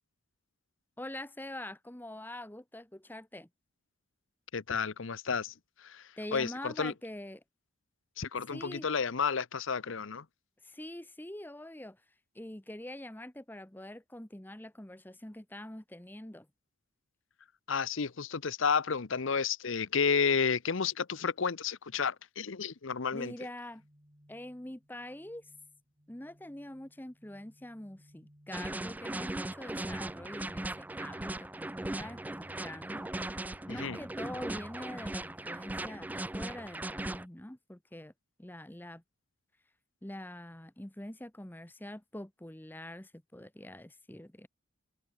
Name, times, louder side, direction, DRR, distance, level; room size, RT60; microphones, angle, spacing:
voice 1, 1.0-3.5 6.2-7.4 8.5-8.9 10.6-12.0 12.3-16.5 23.1-23.8 24.3-25.5 26.1-36.1 36.3-38.1 38.4-39.0 40.0-44.5, left 1 dB, 10° left, 0.9 m, -44 dB
voice 2, 4.5-6.9 8.2-10.2 17.7-23.3 33.7-34.0, left 5 dB, 65° left, 0.8 m, -31 dB
sound 1, 23.7-36.7, equal, 25° right, 5.5 m, -63 dB
sound 2, 28.5-37.3, right 1 dB, 10° right, 0.3 m, -38 dB
head